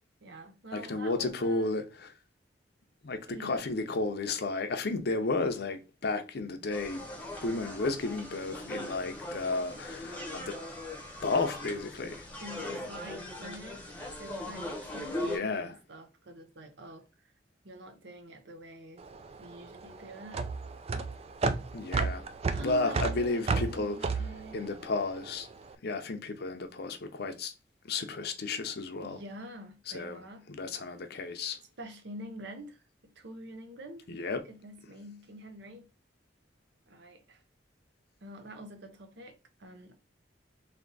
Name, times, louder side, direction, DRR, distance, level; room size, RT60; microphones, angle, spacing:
voice 1, 0.2-1.8 3.3-3.8 12.4-13.8 14.2-17.1 17.6-19.0 19.4-20.5 22.5-24.7 29.0-30.5 31.8-34.1 34.5-35.9 36.9-37.4 38.2-39.9, right 1 dB, 65° right, 0.8 m, -46 dB
voice 2, 0.7-2.1 3.0-7.0 7.4-10.6 11.2-12.3 15.2-15.7 21.7-22.3 22.6-24.2 24.5-25.5 25.8-27.5 27.9-29.2 29.9-31.6 34.1-34.4, left 3 dB, 60° left, 0.6 m, -33 dB
sound 1, 6.7-15.4, left 1 dB, 10° left, 0.9 m, -40 dB
sound 2, 19.0-25.5, right 4 dB, 35° right, 0.4 m, -32 dB
3.4 x 2.8 x 3.9 m
head